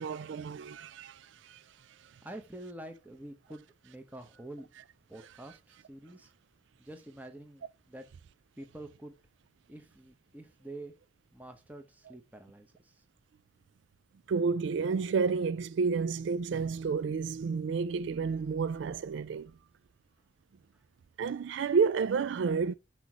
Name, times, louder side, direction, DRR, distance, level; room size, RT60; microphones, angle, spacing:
voice 1, 0.0-1.6 2.0-2.1 14.3-19.5 21.2-22.7, right 5 dB, 65° right, 0.3 m, -30 dB
voice 2, 2.2-4.7 5.1-6.3 6.8-8.1 8.6-9.1 9.7-10.9 11.3-12.9, right 1 dB, 10° right, 1.0 m, -47 dB
6.1 x 4.8 x 6.0 m
head